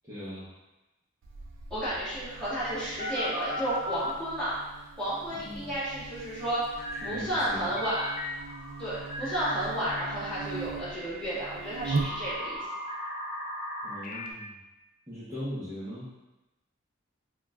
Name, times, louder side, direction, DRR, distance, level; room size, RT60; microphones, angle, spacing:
voice 1, 0.0-0.5 5.4-5.7 7.0-7.7 13.8-14.6 15.1-16.1, equal, 15° right, -13 dB, 0.7 m, -39 dB
Buzz, 1.2-12.6, right 4 dB, 70° right, 0.4 m, -40 dB
voice 2, 1.7-4.6 5.0-6.7 7.0-8.1 8.8-12.6, right 1 dB, 5° left, -13 dB, 1.3 m, -32 dB
sound 1, 3.0-4.2 6.8-7.3 7.8-9.9 10.8-14.3, equal, 40° left, 0.4 m, -37 dB
4.4 x 2.2 x 2.2 m, 1.0 s
head